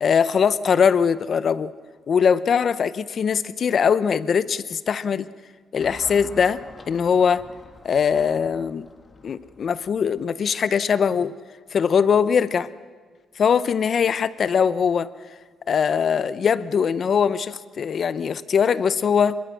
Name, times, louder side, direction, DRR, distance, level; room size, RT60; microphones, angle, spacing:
voice 1, 0.0-1.7 2.1-5.3 5.7-6.6 6.9-7.4 7.8-8.9 9.2-11.3 11.7-12.7 13.4-15.1 15.7-19.4, left 7 dB, 50° left, 16 dB, 0.7 m, -21 dB
Car passing by / Traffic noise roadway noise, 5.8-10.4, left 3 dB, 30° left, 1.9 m, -46 dB
24.5 x 22.0 x 6.4 m, 1.5 s
cardioid pair, 105°, 0 cm